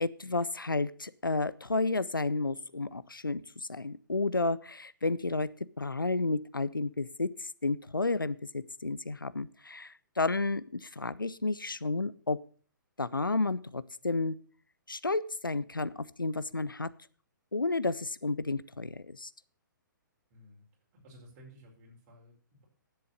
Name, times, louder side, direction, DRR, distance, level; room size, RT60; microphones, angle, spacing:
voice 1, 0.0-3.4 3.7-5.5 5.8-12.4 13.0-14.4 14.9-16.9 17.5-19.3, left 3 dB, 80° left, 17 dB, 0.6 m, -31 dB
voice 2, 20.3-20.6 20.9-22.6, equal, 30° right, -1 dB, 4.9 m, -55 dB
10.5 x 8.0 x 6.6 m, 0.42 s
figure-of-eight pair, 125°, 11 cm